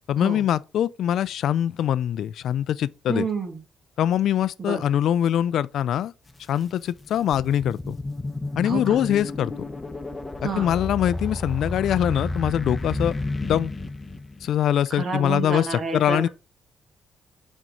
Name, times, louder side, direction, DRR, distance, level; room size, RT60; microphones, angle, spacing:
voice 1, 0.1-3.3 4.0-6.1 6.5-8.0 8.6-9.5 10.4-13.2 13.4-13.7 14.4-16.3, left 10 dB, 75° left, 0.3 m, -23 dB
voice 2, 3.1-3.6 4.6-4.8 8.6-9.0 10.4-10.7 14.9-16.3, right 4 dB, 45° right, 1.9 m, -29 dB
sound 1, 6.3-6.4 6.9-14.6, left 2 dB, 20° left, 0.8 m, -31 dB
6.2 x 4.4 x 3.8 m
cardioid pair, 90°, 0 cm